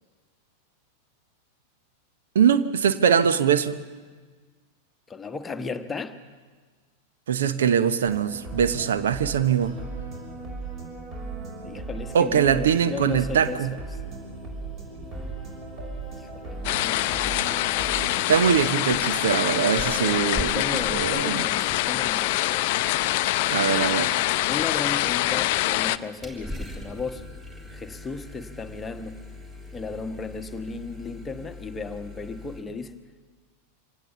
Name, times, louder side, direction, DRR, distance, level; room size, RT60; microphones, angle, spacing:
voice 1, 2.3-3.7 7.3-9.8 12.1-13.7 18.3-21.4 23.5-24.2, right 8 dB, 60° right, 12 dB, 0.9 m, -22 dB
voice 2, 5.1-6.2 11.6-13.8 16.2-17.6 19.8-22.7 24.5-27.3 27.7-29.2 29.7-33.0, left 4 dB, 15° left, 8 dB, 1.2 m, -35 dB
sound 1, 8.0-18.5, right 3 dB, 35° right, 5.8 m, -37 dB
sound 2, 15.0-15.7 16.0-32.6, left 1 dB, 10° right, 3.6 m, -43 dB
sound 3, 16.6-26.0, left 16 dB, 50° left, 0.6 m, -25 dB
25.0 x 18.0 x 7.2 m, 1.5 s
figure-of-eight pair, 90°, 0 cm